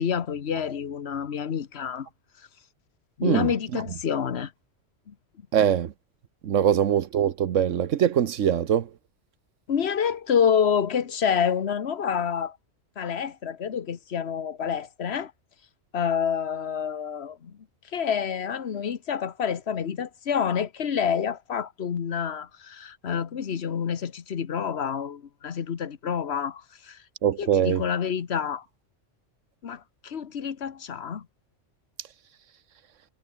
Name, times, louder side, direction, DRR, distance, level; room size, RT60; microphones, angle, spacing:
voice 1, 0.0-2.1 3.2-4.5 5.1-5.2 9.7-12.6 13.0-15.3 15.9-17.6 17.9-27.0 27.4-28.6 29.6-31.3, left 7 dB, 60° left, 1.4 m, -28 dB
voice 2, 3.2-3.5 5.5-5.9 6.4-8.9 27.2-27.8, right 9 dB, 85° right, 1.3 m, -22 dB
omnidirectional pair, 1.3 m